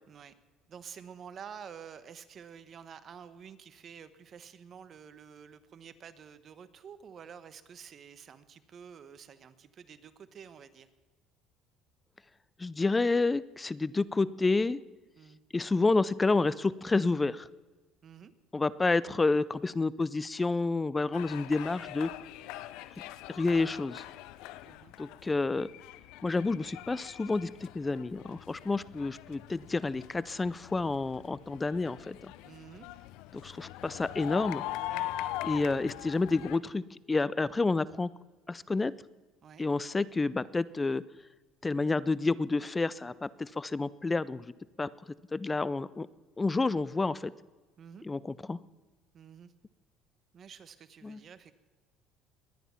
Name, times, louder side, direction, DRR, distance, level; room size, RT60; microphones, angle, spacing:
voice 1, 0.7-10.9 15.2-15.4 18.0-18.3 24.6-24.9 32.4-32.9 34.9-35.1 39.4-39.7 47.8-48.1 49.1-49.5 50.3-51.5, right 7 dB, 45° right, 13 dB, 1.1 m, -49 dB
voice 2, 12.6-14.8 15.5-17.5 18.5-22.1 23.3-24.0 25.0-25.7 26.2-32.3 33.4-34.6 35.4-38.1 38.5-38.9 39.6-41.0 41.6-44.5 44.8-44.9 45.3-46.1 46.4-47.3 48.0-48.6 51.0-51.2, left 3 dB, 15° left, 20 dB, 0.4 m, -29 dB
sound 1, 21.1-36.6, left 15 dB, 75° left, 0.6 m, -42 dB
21.0 x 9.6 x 5.8 m, 1.3 s
supercardioid pair, 105°, 0 cm